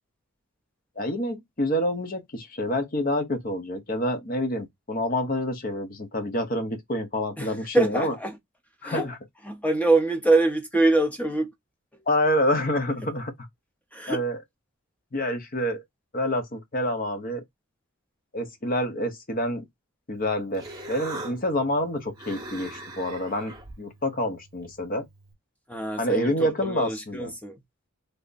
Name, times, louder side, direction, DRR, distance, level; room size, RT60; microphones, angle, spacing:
voice 1, 1.0-8.1 8.8-9.2 12.1-13.3 14.1-14.4 15.1-15.8 16.1-17.4 18.3-19.6 20.1-25.1 26.0-27.3, left 1 dB, 40° left, 0.8 m, -27 dB
voice 2, 7.4-8.4 8.8-9.1 9.5-11.5 13.9-14.2 25.7-26.3 26.6-27.6, right 2 dB, 5° left, 0.6 m, -24 dB
Human voice, 20.1-25.3, right 2 dB, 15° right, 0.9 m, -42 dB
3.4 x 2.1 x 3.9 m
head